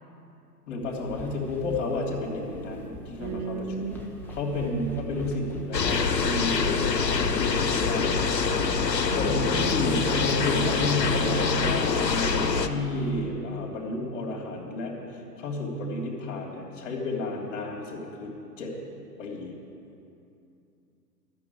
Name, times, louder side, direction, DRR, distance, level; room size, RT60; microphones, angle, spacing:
voice 1, 0.7-3.9 4.3-8.4 9.1-14.9 15.4-18.7 19.2-19.6, left 2 dB, 45° left, 0 dB, 3.0 m, -31 dB
sound 1, 0.8-9.3, equal, 5° left, 1.2 m, -42 dB
voice 2, 3.2-4.0 9.0-10.0, right 4 dB, 35° right, 3 dB, 1.6 m, -35 dB
sound 2, 5.7-12.7, left 5 dB, 85° left, 0.9 m, -25 dB
12.5 x 7.1 x 9.7 m, 2.7 s
figure-of-eight pair, 115°, 49 cm